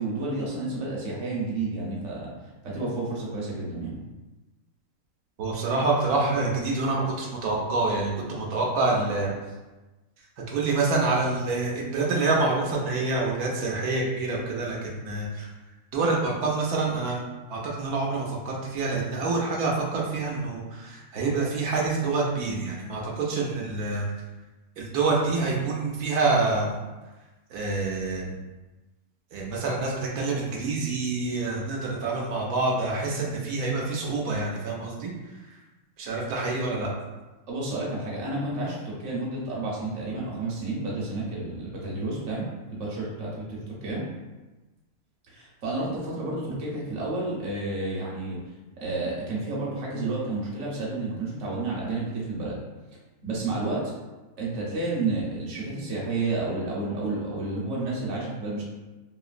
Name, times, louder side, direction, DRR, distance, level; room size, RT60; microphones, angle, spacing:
voice 1, 0.0-2.3 2.6-4.0 37.5-44.1 45.3-48.4 48.8-52.6 53.2-53.9 54.4-58.6, right 2 dB, 55° right, -4 dB, 1.1 m, -31 dB
voice 2, 5.4-9.3 10.5-15.5 15.9-17.2 17.5-24.1 24.8-26.8 27.5-28.3 29.3-35.1 36.0-36.9, right 3 dB, 85° right, -3 dB, 1.1 m, -27 dB
3.1 x 2.8 x 2.4 m, 1.1 s
omnidirectional pair, 1.6 m